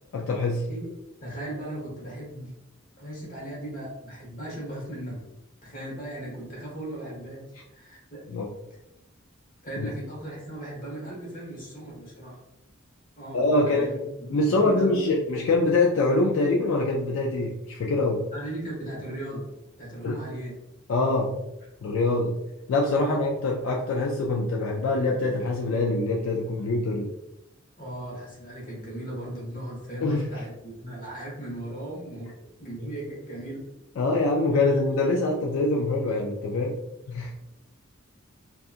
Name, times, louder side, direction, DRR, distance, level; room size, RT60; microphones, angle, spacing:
voice 1, 0.1-0.7 8.3-8.5 9.8-9.9 13.3-14.0 14.3-18.3 20.0-20.2 20.9-21.3 21.8-22.4 22.7-27.1 30.0-30.3 34.0-36.8 37.1-37.3, left 2 dB, 75° left, -1 dB, 0.3 m, -24 dB
voice 2, 1.2-2.5 3.0-5.2 5.6-7.4 7.7-8.2 9.6-12.4 13.2-15.2 18.3-19.5 19.8-20.5 22.9-23.2 27.8-33.6, right 1 dB, 45° left, -4 dB, 1.1 m, -37 dB
2.7 x 2.3 x 2.4 m, 0.89 s
head